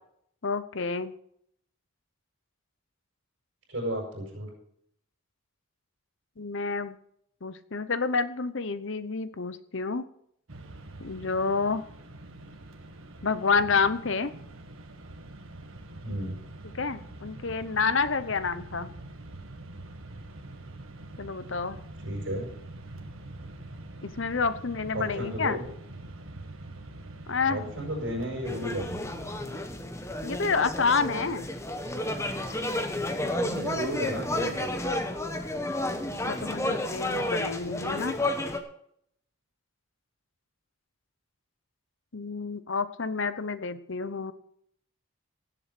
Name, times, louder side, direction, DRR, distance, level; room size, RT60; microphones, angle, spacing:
voice 1, 0.4-1.1 6.4-6.9 7.4-10.0 11.0-11.8 13.2-14.3 16.7-18.9 21.2-21.8 24.0-25.6 27.3-27.7 30.2-31.5 36.3-38.1 42.1-44.3, left 4 dB, 60° left, 13 dB, 0.8 m, -29 dB
voice 2, 3.7-4.5 16.0-16.4 22.0-22.4 24.9-25.6 27.5-29.0 33.3-34.7, equal, 55° right, -2 dB, 6.5 m, -33 dB
Mechanisms, 10.5-29.9, right 2 dB, 70° right, 1.7 m, -44 dB
sound 1, 28.4-38.6, left 1 dB, 15° left, 1.1 m, -31 dB
17.0 x 7.8 x 6.0 m, 0.70 s
head